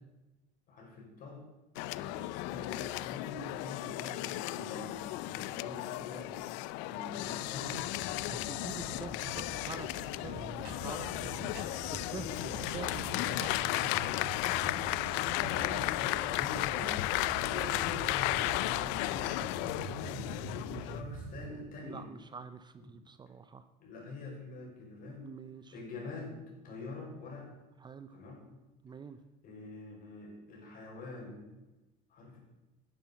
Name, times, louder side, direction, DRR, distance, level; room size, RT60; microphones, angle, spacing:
voice 1, 0.7-1.4 1.9-7.9 11.1-11.4 15.0-17.0 17.3-19.4 20.7-22.0 22.8-22.9 23.8-25.3 25.7-27.5 28.1-28.5 29.4-31.6 32.1-32.4, left 3 dB, 50° left, 0 dB, 5.4 m, -45 dB
sound 1, 1.8-21.0, left 18 dB, 80° left, 0.5 m, -34 dB
sound 2, 7.0-21.5, right 4 dB, 65° right, 2.5 m, -45 dB
voice 2, 8.3-11.5 11.9-13.1 13.4-13.6 20.9-21.0 21.8-23.6 25.0-25.8 27.8-28.2 28.8-29.2, right 5 dB, 25° right, 12 dB, 0.7 m, -46 dB
10.5 x 10.0 x 7.0 m, 1.1 s
cardioid pair, 125°, 19 cm